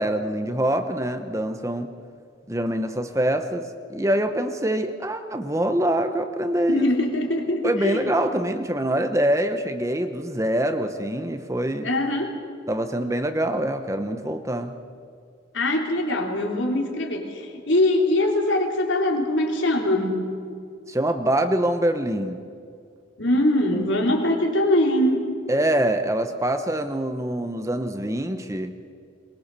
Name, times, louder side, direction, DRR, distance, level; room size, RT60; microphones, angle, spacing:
voice 1, 0.0-1.9 2.5-3.6 3.9-6.8 7.6-11.9 12.7-14.7 20.9-22.4 23.7-23.8 25.5-28.7, right 1 dB, 15° right, 7 dB, 0.9 m, -24 dB
voice 2, 6.7-8.1 11.8-12.3 15.5-20.3 23.2-25.3, left 1 dB, 70° left, 2 dB, 3.4 m, -22 dB
22.0 x 21.5 x 6.9 m, 2.3 s
head